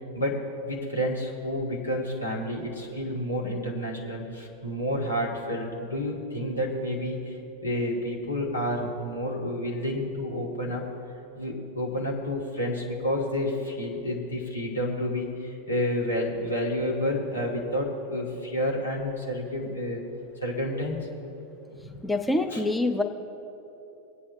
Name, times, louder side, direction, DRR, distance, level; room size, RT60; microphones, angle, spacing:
voice 1, 0.1-10.8 11.4-20.0 20.4-21.0 21.8-22.0 22.5-22.6, left 1 dB, 75° left, -2 dB, 2.0 m, -30 dB
voice 2, 22.0-23.0, left 2 dB, 5° left, 6 dB, 0.6 m, -25 dB
22.5 x 8.5 x 2.8 m, 3.0 s
figure-of-eight pair, 90°, 0 cm